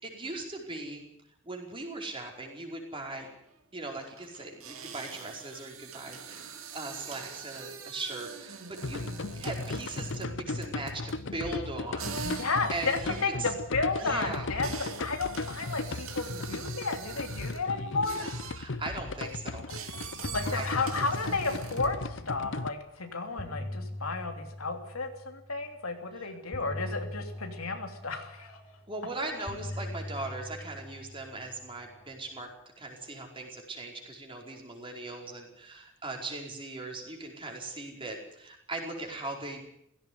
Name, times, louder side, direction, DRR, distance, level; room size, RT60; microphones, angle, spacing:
voice 1, 0.0-1.0 1.4-3.3 3.7-6.5 6.7-13.5 14.0-14.5 17.9-19.7 20.5-20.9 26.1-26.3 28.9-32.5 32.8-39.6, right 2 dB, 25° right, 1 dB, 4.9 m, -39 dB
sound 1, 3.0-3.1 3.3-3.5 4.0-10.4 10.6-11.3 12.0-17.7 18.0-18.7 19.1-22.0, right 6 dB, 75° right, 3.1 m, -44 dB
sound 2, 8.8-22.7, left 3 dB, 60° left, 0.8 m, -36 dB
voice 2, 12.2-13.0 13.2-18.3 20.3-28.6, left 3 dB, 90° left, 5 dB, 3.1 m, -33 dB
sound 3, 19.7-19.8 20.1-22.4 23.1-25.5 26.5-29.0 29.5-32.0, left 1 dB, 10° left, 5.1 m, -41 dB
17.0 x 16.5 x 9.6 m, 0.74 s
head